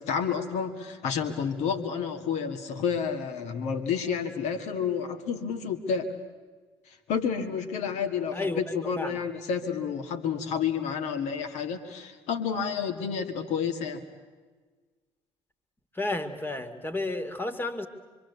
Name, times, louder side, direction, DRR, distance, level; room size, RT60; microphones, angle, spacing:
voice 1, 0.0-6.1 6.9-14.0, left 6 dB, 60° left, 7 dB, 2.2 m, -30 dB
voice 2, 8.3-9.2 15.9-17.9, left 2 dB, 15° left, 9 dB, 2.2 m, -32 dB
25.5 x 24.0 x 8.2 m, 1.4 s
figure-of-eight pair, 50°, 13 cm